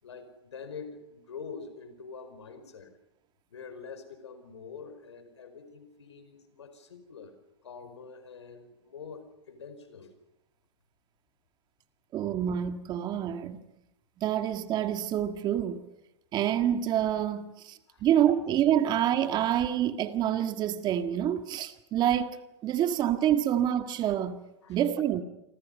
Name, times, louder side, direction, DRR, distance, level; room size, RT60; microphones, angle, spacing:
voice 1, 0.0-3.0 3.5-7.4 7.6-10.2 17.9-18.0 24.6-24.8, left 5 dB, 90° left, 4.9 m, -45 dB
voice 2, 12.1-13.6 14.2-15.8 16.3-24.4 24.7-25.2, right 10 dB, 30° right, 1.8 m, -27 dB
28.0 x 25.5 x 5.5 m
hypercardioid pair, 125°, 14 cm